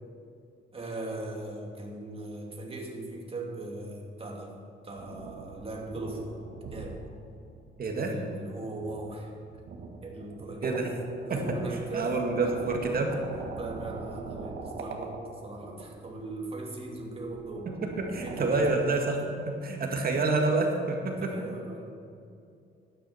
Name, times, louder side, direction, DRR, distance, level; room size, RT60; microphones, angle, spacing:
voice 1, 0.7-4.5 4.8-6.4 6.7-7.0 8.1-9.5 10.0-10.9 11.2-12.4 13.5-17.7 18.2-18.7 21.1-22.0, right 2 dB, 30° right, 0 dB, 2.6 m, -39 dB
sound 1, 5.0-8.0 8.8-16.2 16.8-18.8, right 3 dB, 75° right, 1.7 m, -42 dB
voice 2, 7.8-8.1 10.6-10.9 11.3-11.6 11.9-13.2 18.0-19.2 19.5-21.3, right 3 dB, 50° right, 2 dB, 2.0 m, -28 dB
12.0 x 10.0 x 5.7 m, 2.5 s
cardioid pair, 90°, 20 cm